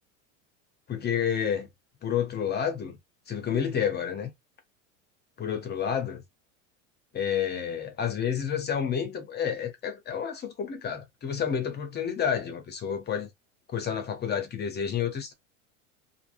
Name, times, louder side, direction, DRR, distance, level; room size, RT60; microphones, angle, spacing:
voice 1, 0.9-1.7 2.0-3.0 3.3-4.3 5.4-6.2 7.1-13.3 13.7-15.3, left 8 dB, 25° left, 0.6 m, -30 dB
3.3 x 2.0 x 2.4 m
supercardioid pair, 110°, 40 cm